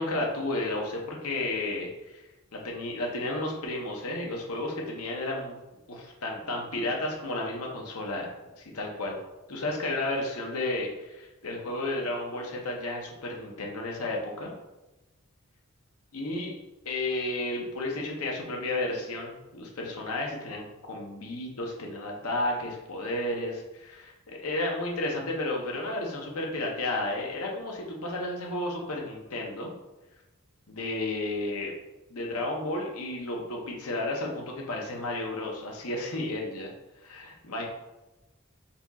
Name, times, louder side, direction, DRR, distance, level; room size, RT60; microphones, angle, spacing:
voice 1, 0.0-2.2 2.5-5.6 5.9-8.3 8.6-9.2 9.5-14.5 16.1-16.5 16.8-29.7 30.7-31.7 32.1-36.7 37.0-37.6, left 2 dB, 80° left, 0 dB, 0.9 m, -32 dB
4.2 x 2.4 x 4.1 m, 1.0 s
head